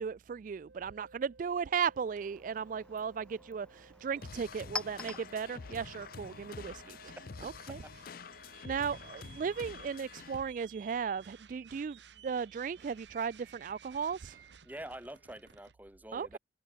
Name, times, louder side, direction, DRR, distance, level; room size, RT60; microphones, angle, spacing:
voice 1, 0.0-7.8 8.6-14.5 16.1-16.4, right 6 dB, 45° right, 0.3 m, -36 dB
sound 1, 0.7-15.7, right 6 dB, 75° right, 1.5 m, -58 dB
Chink clink, 1.8-7.3, left 1 dB, 5° left, 0.9 m, -47 dB
sound 2, 4.2-10.4, left 5 dB, 50° left, 0.5 m, -48 dB
voice 2, 14.6-16.4, right 1 dB, 10° right, 2.4 m, -46 dB
head